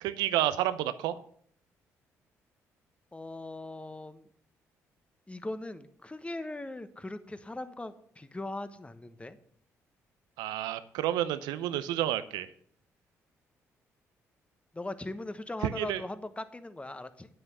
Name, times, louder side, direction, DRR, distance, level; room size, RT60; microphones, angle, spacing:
voice 1, 0.0-1.2 10.4-12.5 15.6-16.0, right 13 dB, 80° right, 13 dB, 0.7 m, -30 dB
voice 2, 3.1-4.3 5.3-9.4 14.7-17.3, left 2 dB, 15° left, 11 dB, 1.1 m, -40 dB
9.7 x 7.8 x 5.6 m, 0.62 s
hypercardioid pair, 50°, 7 cm